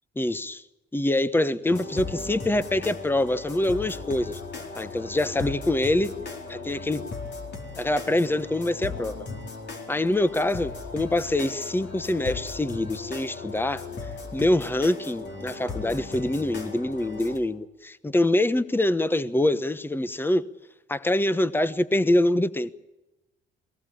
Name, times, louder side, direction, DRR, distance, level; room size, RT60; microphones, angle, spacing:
voice 1, 0.2-0.6 0.9-4.4 4.7-6.1 6.5-7.0 7.8-9.3 9.9-13.8 14.3-20.4 20.9-22.7, left 1 dB, 10° left, 1.1 m, -25 dB
sound 1, 1.7-17.4, left 4 dB, 60° left, 4.2 m, -37 dB
22.5 x 18.5 x 8.7 m
cardioid pair, 90°, 20 cm